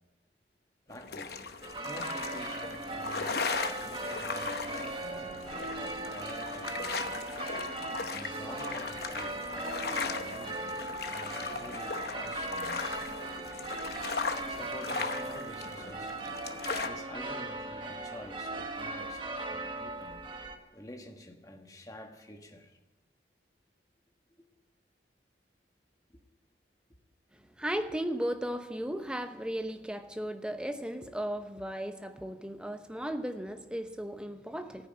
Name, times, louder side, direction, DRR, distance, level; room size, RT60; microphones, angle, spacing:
sound 1, 0.9-16.9, left 4 dB, 60° left, 0.9 m, -38 dB
voice 1, 0.9-1.5 1.8-7.1 8.0-10.8 11.1-12.9 14.5-16.2 16.8-20.3 20.7-22.8 24.4-24.5 26.1-26.2, left 1 dB, 20° left, 1.5 m, -48 dB
sound 2, 1.6-20.6, right 2 dB, 30° right, 1.2 m, -38 dB
voice 2, 27.3-34.9, equal, 5° right, 0.8 m, -36 dB
14.0 x 9.7 x 8.9 m
head